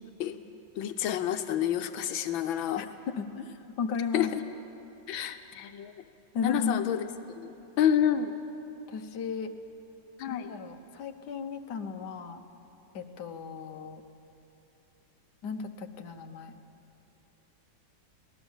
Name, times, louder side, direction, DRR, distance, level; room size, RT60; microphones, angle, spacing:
voice 1, 0.7-2.8 4.1-4.4 5.1-5.9 6.4-7.1 7.4-8.3 10.2-10.5, left 10 dB, 90° left, 8 dB, 1.6 m, -29 dB
voice 2, 2.7-4.3 6.3-6.8 8.9-9.5 10.2-12.4 12.9-14.0 15.4-16.5, left 6 dB, 60° left, 5 dB, 1.6 m, -35 dB
24.5 x 18.0 x 7.2 m, 2.9 s
omnidirectional pair, 2.1 m